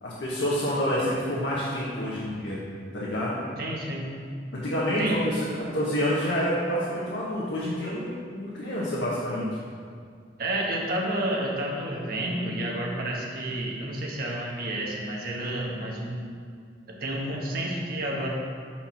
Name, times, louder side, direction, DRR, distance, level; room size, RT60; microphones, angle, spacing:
voice 1, 0.0-2.6 2.9-3.4 4.5-9.5, equal, 80° left, -7 dB, 1.2 m, -28 dB
voice 2, 3.6-4.1 5.0-5.2 10.4-16.2 17.0-18.3, right 1 dB, 55° right, -2 dB, 1.1 m, -30 dB
6.0 x 4.5 x 5.7 m, 2.1 s
head